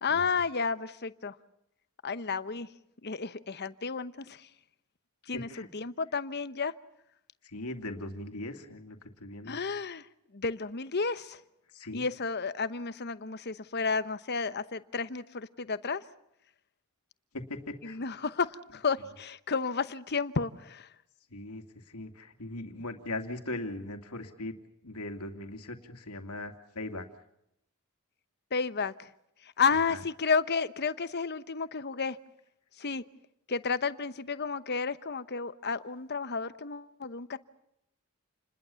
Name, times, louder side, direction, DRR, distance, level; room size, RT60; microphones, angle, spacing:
voice 1, 0.0-1.4 2.0-2.7 3.0-4.5 5.3-6.7 9.4-10.1 10.3-11.4 11.9-16.0 17.8-20.9 28.5-29.1 29.4-32.2 32.8-33.0 33.5-37.4, left 5 dB, 50° left, 1.0 m, -32 dB
voice 2, 5.3-5.7 7.4-9.6 11.7-12.0 17.3-18.0 21.3-24.5 24.8-27.1 29.9-30.0, left 2 dB, 85° left, 2.6 m, -39 dB
29.0 x 21.0 x 7.1 m
head